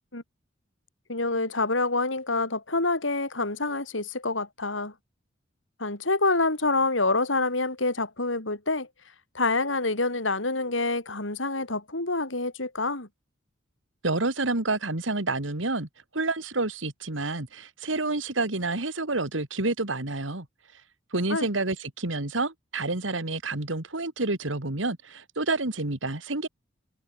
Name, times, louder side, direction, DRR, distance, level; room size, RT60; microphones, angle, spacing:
voice 1, 1.1-4.9 5.8-8.9 9.3-13.1 21.3-21.5, left 3 dB, 90° left, 5.3 m, -27 dB
voice 2, 14.0-20.5 20.7-20.8 21.1-26.5, right 2 dB, 90° right, 2.6 m, -29 dB
head